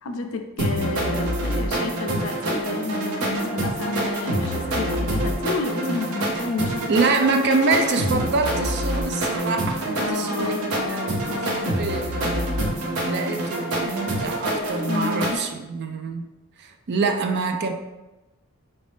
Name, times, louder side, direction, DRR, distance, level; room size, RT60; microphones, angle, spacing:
voice 1, 0.0-6.7 10.0-11.7 14.9-15.4, left 3 dB, 65° left, 5 dB, 0.5 m, -30 dB
sound 1, 0.6-15.4, right 1 dB, 85° right, 0.8 m, -26 dB
voice 2, 6.9-11.0 11.3-12.2 12.9-16.3 16.6-17.7, right 4 dB, 50° right, 5 dB, 0.4 m, -25 dB
4.1 x 2.7 x 3.3 m, 1.1 s
head